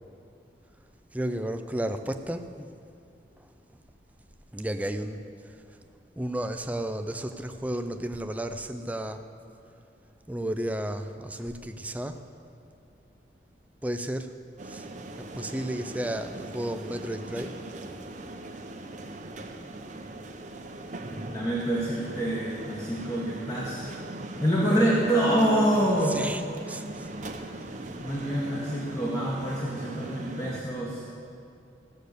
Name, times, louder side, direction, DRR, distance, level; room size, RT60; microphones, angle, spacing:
voice 1, 1.1-2.7 3.4-3.5 4.5-5.6 6.2-9.2 10.3-12.2 13.8-14.3 14.6-14.9 15.2-17.6 26.0-27.1, right 1 dB, 10° right, 7 dB, 0.4 m, -33 dB
sound 1, 14.6-30.6, right 2 dB, 40° right, 0.7 m, -40 dB
voice 2, 21.3-23.9 24.4-26.2 28.0-31.0, right 1 dB, 20° left, -5 dB, 1.3 m, -26 dB
15.0 x 6.6 x 6.7 m, 2.5 s
head